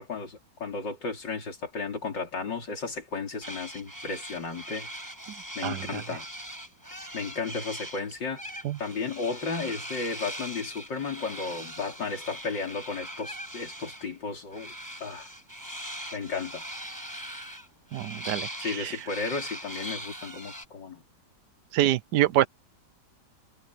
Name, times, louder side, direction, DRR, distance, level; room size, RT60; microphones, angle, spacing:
voice 1, 0.0-4.9 5.6-6.3 7.1-14.7 15.0-15.3 16.1-16.7 18.6-21.0, left 4 dB, 85° left, 4.2 m, -34 dB
sound 1, 3.4-8.0 8.4-14.1 14.5-20.7, equal, 10° right, 7.0 m, -40 dB
voice 2, 5.6-6.0 8.6-8.8 17.9-19.0 21.7-22.5, right 13 dB, 75° right, 1.2 m, -26 dB
omnidirectional pair, 1.9 m